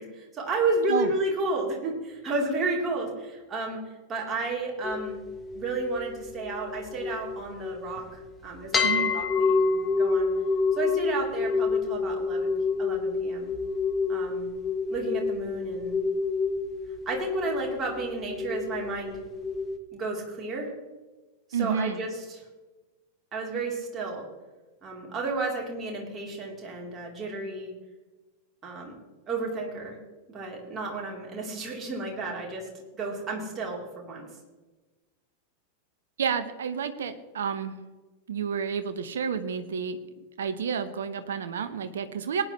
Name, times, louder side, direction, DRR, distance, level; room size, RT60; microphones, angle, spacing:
voice 1, 0.0-3.8 4.1-5.2 5.5-10.3 10.7-12.5 12.8-13.5 14.1-14.5 14.9-16.0 17.1-19.2 19.9-20.7 21.5-22.4 23.3-24.3 24.8-27.7 28.6-29.0 29.3-30.0 30.3-32.7 32.9-34.2, right 3 dB, 25° right, -1 dB, 3.6 m, -32 dB
sound 1, 4.8-8.2 8.7-19.8, left 4 dB, 20° left, 1.3 m, -28 dB
voice 2, 8.8-9.2 21.5-22.0 36.2-37.8 38.3-40.0 40.4-42.4, right 7 dB, 65° right, 11 dB, 1.0 m, -30 dB
19.0 x 10.0 x 3.2 m, 1.2 s
figure-of-eight pair, 90°, 0 cm